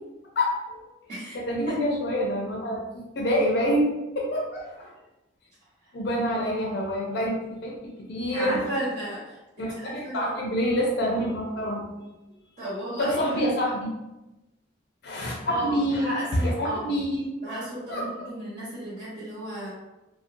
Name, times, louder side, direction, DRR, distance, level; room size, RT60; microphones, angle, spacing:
voice 1, 0.4-0.8 1.3-3.9 4.2-4.9 5.9-8.6 9.6-11.9 13.0-13.9 15.0-16.1 16.4-17.3 17.9-18.3, equal, 60° left, -2 dB, 0.4 m, -27 dB
voice 2, 8.3-9.4 9.7-10.3 12.6-13.5 15.4-17.0 17.4-19.7, right 1 dB, 45° right, -10 dB, 1.0 m, -33 dB
2.4 x 2.1 x 2.5 m, 1.0 s
head